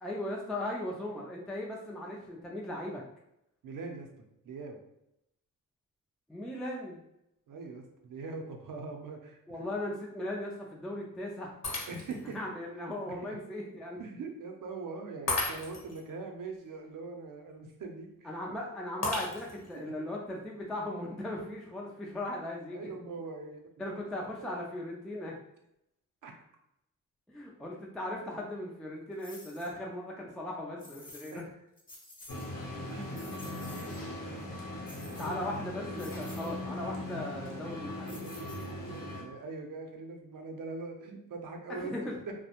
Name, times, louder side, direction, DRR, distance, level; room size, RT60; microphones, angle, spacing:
voice 1, 0.0-3.0 6.3-7.0 9.5-11.5 11.8-11.9 12.3-14.0 18.2-22.9 23.8-25.3 27.3-31.4 35.2-38.2 41.7-42.1, left 1 dB, ahead, -2 dB, 0.3 m, -38 dB
voice 2, 3.6-4.1 4.4-4.8 7.5-9.4 11.9-12.4 12.9-13.0 13.2-13.4 14.0-18.4 22.7-24.0 26.2-26.3 30.8-31.5 32.9-33.3 33.6-34.7 35.0-35.3 39.1-42.0 42.3-42.4, right 3 dB, 70° right, 3 dB, 0.6 m, -42 dB
Shatter, 11.6-12.3 12.9-13.0 15.3-16.0 19.0-19.8, left 2 dB, 50° left, 0.9 m, -34 dB
sound 1, 29.2-29.7 30.8-31.4 31.8-32.5 32.9-34.1 34.9-35.6 36.0-36.5 38.1-38.9, left 2 dB, 25° left, 0.7 m, -51 dB
sound 2, 32.3-39.2, left 1 dB, 75° left, 0.7 m, -39 dB
2.3 x 2.1 x 2.8 m, 0.82 s
cardioid pair, 90°, 34 cm